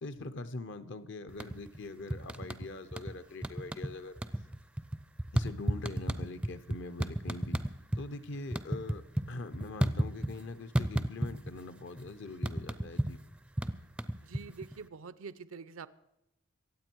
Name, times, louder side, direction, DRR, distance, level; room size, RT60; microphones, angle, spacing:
voice 1, 0.0-4.2 5.3-7.6 8.0-13.2, left 2 dB, 60° left, 12 dB, 0.7 m, -43 dB
sound 1, 1.3-1.8 2.1-3.1 3.4-8.0 8.3-10.4 10.8-11.6 11.9-14.8, right 1 dB, 5° right, 0.4 m, -32 dB
voice 2, 14.2-15.9, right 5 dB, 80° right, 16 dB, 0.6 m, -45 dB
24.0 x 8.5 x 4.5 m, 0.85 s
head